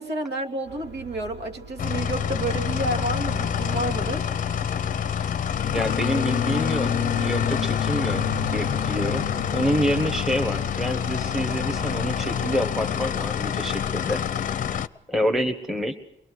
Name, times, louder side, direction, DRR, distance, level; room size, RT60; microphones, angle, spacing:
voice 1, 0.0-4.3, right 1 dB, 60° right, 3 dB, 2.7 m, -30 dB
sound 1, 0.7-13.0, right 1 dB, 80° right, 6.0 m, -40 dB
sound 2, 1.8-14.9, left 8 dB, 45° left, 0.7 m, -26 dB
voice 2, 5.7-8.2 8.5-9.2 9.5-14.2 15.1-16.0, equal, ahead, 6 dB, 1.5 m, -27 dB
23.5 x 21.5 x 6.3 m, 0.83 s
wide cardioid pair, 165°, 19 cm